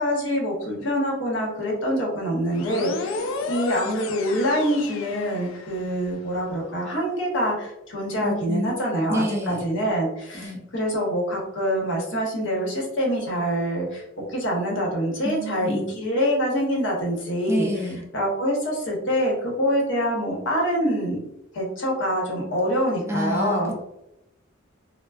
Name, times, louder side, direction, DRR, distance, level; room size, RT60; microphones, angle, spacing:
voice 1, 0.0-14.0 14.3-17.7 18.1-21.2 21.5-23.7, equal, 65° left, -2 dB, 1.0 m, -25 dB
sound 1, 2.5-6.0, left 3 dB, 80° left, 0.4 m, -33 dB
voice 2, 8.2-8.7 9.1-9.6 10.3-10.6 15.2-16.0 17.5-18.0 23.1-23.8, equal, 15° right, 0 dB, 0.3 m, -28 dB
3.7 x 2.0 x 2.3 m, 0.85 s
head